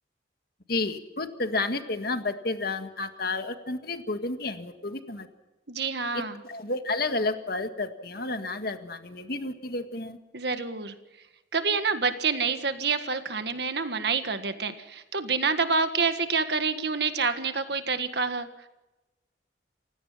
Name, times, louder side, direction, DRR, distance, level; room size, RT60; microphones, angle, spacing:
voice 1, 0.7-5.3 6.4-10.2, left 3 dB, 55° left, 7 dB, 1.8 m, -31 dB
voice 2, 5.7-6.4 10.3-11.3 11.5-18.7, right 5 dB, 60° right, 9 dB, 1.7 m, -28 dB
29.0 x 16.5 x 5.8 m, 1.0 s
head